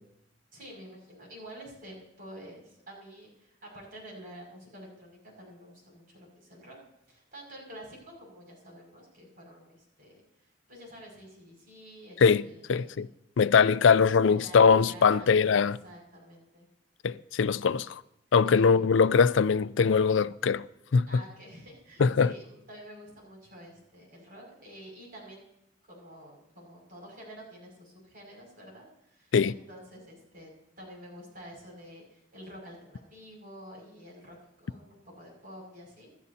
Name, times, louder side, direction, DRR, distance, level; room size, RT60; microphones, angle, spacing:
voice 1, 0.5-6.8 7.1-13.0 14.2-16.7 18.4-18.7 21.1-25.5 25.9-30.5 30.8-36.1, equal, 50° right, 6.0 m, -49 dB
voice 2, 12.7-13.1 13.4-15.8 17.0-18.0 18.3-20.6 20.9-21.1 22.0-22.3 29.3-29.5, left 5 dB, 80° left, 0.4 m, -22 dB
27.0 x 12.0 x 2.8 m
head